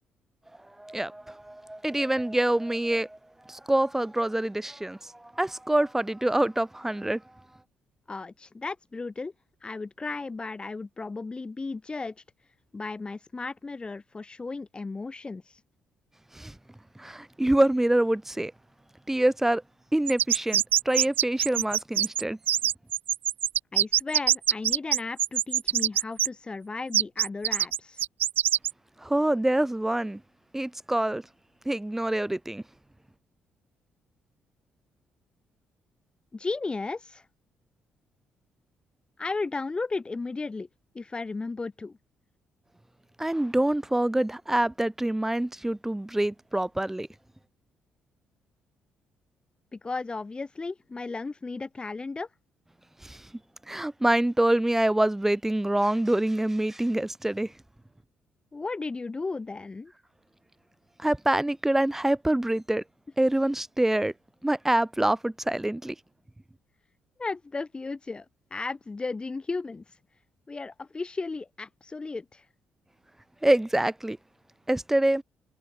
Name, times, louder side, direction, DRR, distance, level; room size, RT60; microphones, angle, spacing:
voice 1, 0.8-3.2 3.5-7.2 16.3-16.5 17.0-18.5 19.1-19.6 19.9-22.4 29.0-30.2 30.5-31.2 31.7-32.6 43.2-47.1 53.0-53.2 53.7-57.5 61.0-62.8 63.2-64.1 64.4-65.9 73.4-74.2 74.7-75.2, right 1 dB, 10° right, 7.5 m, -26 dB
voice 2, 8.1-9.3 9.6-12.1 12.7-15.6 23.7-28.0 36.3-37.2 39.2-40.7 40.9-41.9 49.7-52.3 58.5-59.9 67.2-68.2 68.5-69.8 70.5-72.4, left 3 dB, 25° left, 3.1 m, -35 dB
sound 1, 20.1-26.3 26.9-28.7, right 11 dB, 70° right, 1.3 m, -23 dB
cardioid pair, 75°, 4 cm